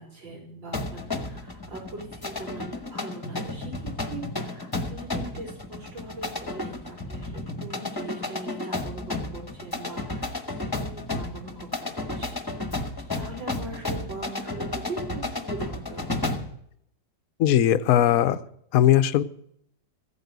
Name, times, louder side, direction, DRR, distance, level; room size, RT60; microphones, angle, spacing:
voice 1, 0.0-10.3 10.6-12.8 13.1-16.1, right 2 dB, 85° right, -1 dB, 5.2 m, -41 dB
sound 1, 0.7-16.6, left 2 dB, 15° left, 1.1 m, -33 dB
voice 2, 17.4-18.4 18.7-19.2, left 11 dB, 60° left, 13 dB, 1.0 m, -19 dB
15.5 x 9.6 x 8.1 m, 0.71 s
omnidirectional pair, 2.0 m